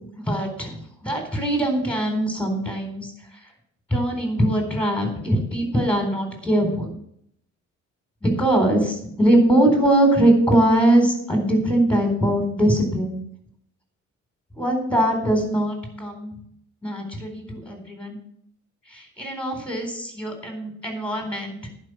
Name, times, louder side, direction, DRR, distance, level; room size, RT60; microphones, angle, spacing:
voice 1, 0.2-3.1 3.9-6.9 8.2-13.2 14.6-16.3 16.8-18.2 18.9-21.6, right 1 dB, 5° left, 3 dB, 4.0 m, -21 dB
10.5 x 5.4 x 7.9 m, 0.69 s
cardioid pair, 90°, 30 cm